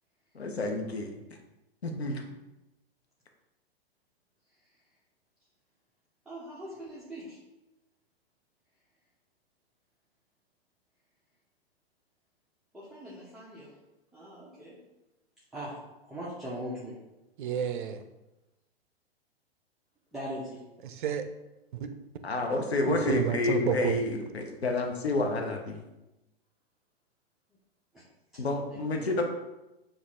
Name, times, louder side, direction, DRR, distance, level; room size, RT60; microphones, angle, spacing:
voice 1, 0.3-1.1 1.8-2.2 22.2-25.8 28.4-29.2, left 2 dB, 80° left, 4 dB, 0.7 m, -29 dB
voice 2, 6.3-7.4 12.7-13.7 14.1-14.8 15.5-15.7 16.1-16.9 20.1-20.6 27.9-28.0 28.3-28.4 28.7-29.2, equal, ahead, -8 dB, 0.5 m, -41 dB
voice 3, 17.4-18.0 20.8-21.2 21.7-21.9 22.9-24.0, right 7 dB, 55° right, 9 dB, 0.5 m, -30 dB
6.7 x 2.4 x 2.4 m, 0.99 s
figure-of-eight pair, 110°, 31 cm